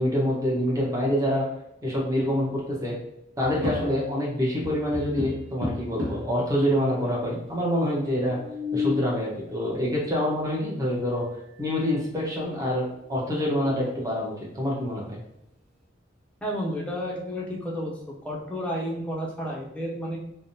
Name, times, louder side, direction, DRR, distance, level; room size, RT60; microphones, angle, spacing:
voice 1, 0.0-1.5 1.8-2.9 3.4-8.4 8.7-11.3 11.6-15.2, equal, 15° right, -4 dB, 0.8 m, -26 dB
sound 1, 3.4-4.3 4.6-6.4 7.1-7.2 7.4-7.5 8.2-9.1 10.9-11.0 11.5-12.0 12.4-12.5 13.0-13.9, left 3 dB, 65° right, 0.9 m, -33 dB
voice 2, 16.4-18.0 18.2-20.2, equal, 5° left, -4 dB, 0.6 m, -31 dB
3.4 x 2.2 x 2.7 m, 0.84 s
head